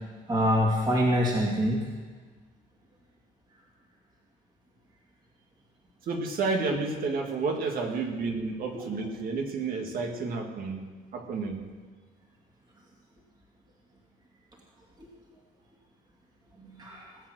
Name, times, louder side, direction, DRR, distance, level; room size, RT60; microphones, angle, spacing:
voice 1, 0.3-1.8 15.0-15.1 16.6-17.1, equal, 25° right, -2 dB, 2.4 m, -25 dB
voice 2, 6.1-10.8 11.1-11.6, right 4 dB, 60° right, 3 dB, 2.1 m, -30 dB
19.0 x 7.8 x 6.4 m, 1.4 s
cardioid pair, 110°, 17 cm